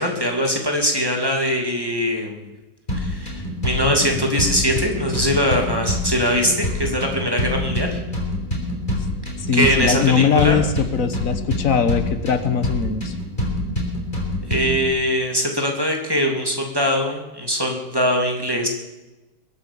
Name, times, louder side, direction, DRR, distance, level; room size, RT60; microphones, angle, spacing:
voice 1, 0.0-2.4 2.9-8.0 9.5-10.6 14.5-18.7, equal, 15° right, 1 dB, 2.4 m, -22 dB
sound 1, 2.9-14.9, left 1 dB, 25° left, 4.1 m, -26 dB
voice 2, 9.5-13.1, left 6 dB, 55° left, 10 dB, 1.3 m, -20 dB
22.0 x 8.8 x 7.0 m, 1.1 s
omnidirectional pair, 1.9 m